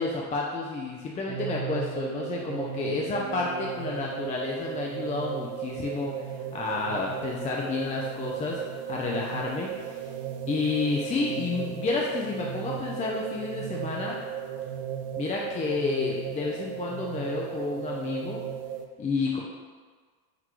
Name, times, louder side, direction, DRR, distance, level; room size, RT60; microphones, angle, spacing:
voice 1, 0.0-6.1 6.5-8.6 8.9-10.1 10.5-14.2 15.2-18.4 19.0-19.4, left 4 dB, 20° left, -2 dB, 0.3 m, -30 dB
sound 1, 1.3-18.9, right 9 dB, 70° right, 0.5 m, -35 dB
5.9 x 2.2 x 3.0 m, 1.5 s
supercardioid pair, 110°, 41 cm